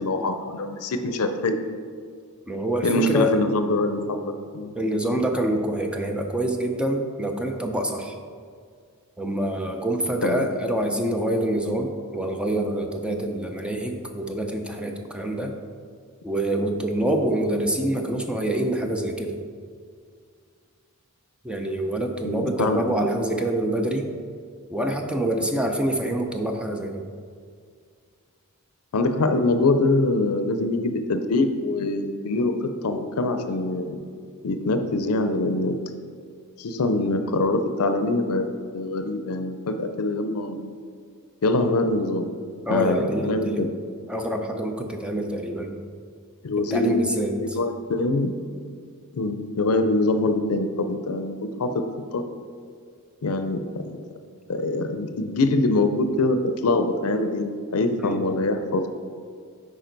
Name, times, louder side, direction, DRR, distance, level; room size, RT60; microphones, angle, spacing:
voice 1, 0.0-1.6 2.8-4.7 10.2-10.5 22.2-22.8 28.9-34.0 34.4-35.7 36.6-38.4 38.7-40.7 41.4-42.3 42.7-43.7 46.4-47.0 47.4-48.3 49.1-51.8 52.1-52.2 53.2-54.0 54.5-58.9, left 2 dB, 75° left, 8 dB, 0.5 m, -24 dB
voice 2, 2.5-3.3 4.7-8.2 9.2-15.5 16.2-19.4 21.4-24.1 24.7-27.1 42.7-43.6 44.1-45.8 46.6-47.6 58.0-58.2, right 1 dB, 5° right, 3 dB, 0.5 m, -26 dB
8.8 x 4.9 x 3.9 m, 2.1 s
head